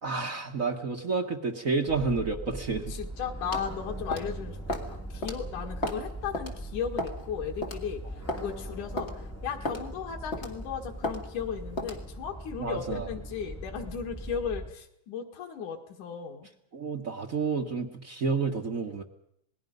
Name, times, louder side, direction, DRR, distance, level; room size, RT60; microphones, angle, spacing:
voice 1, 0.0-2.9 12.6-13.1 16.7-19.0, right 4 dB, 50° right, 2 dB, 0.9 m, -30 dB
sound 1, 1.9-14.7, right 1 dB, 10° left, 1.1 m, -40 dB
voice 2, 2.9-16.5, left 7 dB, 90° left, 2 dB, 3.3 m, -36 dB
sound 2, 3.5-3.7 4.1-4.3 4.7-4.9 5.2-5.4 5.8-6.0 6.3-6.5 7.0-7.2 7.6-7.8 8.3-8.4 9.0-9.1 9.6-9.8 10.3-10.6 11.0-11.2 11.8-12.0, left 1 dB, 25° left, 1.7 m, -33 dB
27.5 x 19.5 x 5.4 m, 0.74 s
omnidirectional pair, 3.4 m